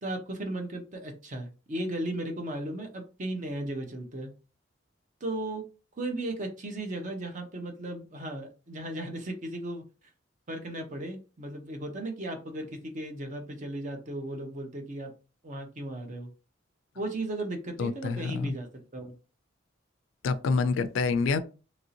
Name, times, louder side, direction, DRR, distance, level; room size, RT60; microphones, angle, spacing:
voice 1, 0.0-4.3 5.2-5.6 6.0-9.8 10.5-15.1 15.4-16.3 16.9-19.1, right 1 dB, 40° right, 0.7 m, -36 dB
voice 2, 17.8-18.6 20.2-21.4, left 4 dB, 80° left, 0.3 m, -27 dB
2.9 x 2.6 x 2.7 m
head